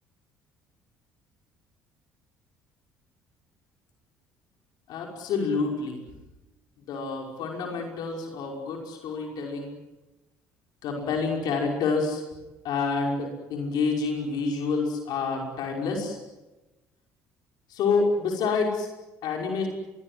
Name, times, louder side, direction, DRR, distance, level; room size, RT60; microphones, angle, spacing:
voice 1, 4.9-6.0 6.9-9.7 10.8-12.2 12.6-16.2 17.7-18.9 19.2-19.7, left 4 dB, 65° left, 1 dB, 5.7 m, -28 dB
25.5 x 22.5 x 7.9 m, 1.1 s
hypercardioid pair, 55°, 8 cm